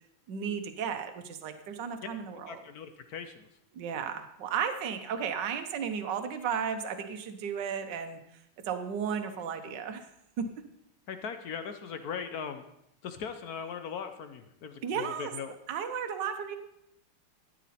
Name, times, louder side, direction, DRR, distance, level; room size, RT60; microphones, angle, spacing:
voice 1, 0.3-2.5 3.7-8.2 8.7-10.0 10.4-10.5 14.8-15.3 15.7-16.6, right 7 dB, 60° right, 7 dB, 1.5 m, -34 dB
voice 2, 2.5-3.5 11.1-12.6 13.0-15.6, left 6 dB, 60° left, 8 dB, 1.0 m, -39 dB
13.5 x 9.6 x 4.2 m, 0.79 s
omnidirectional pair, 2.3 m